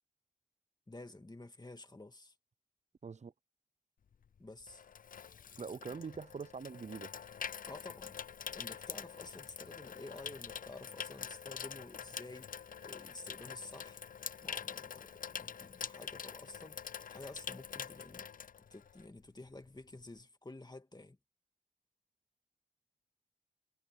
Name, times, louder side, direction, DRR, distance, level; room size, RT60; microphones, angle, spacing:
voice 1, 0.9-2.3 4.4-4.8 7.6-8.2 8.5-14.0 14.4-18.3 18.7-21.2, left 2 dB, 30° left, 1.7 m, -51 dB
voice 2, 3.0-3.3 5.6-7.1, right 5 dB, 50° right, 0.5 m, -43 dB
Water tap faucet / Sink (filling or washing), 4.1-19.2 19.5-19.8, left 7 dB, 70° left, 0.4 m, -45 dB
cardioid pair, 45°, 15 cm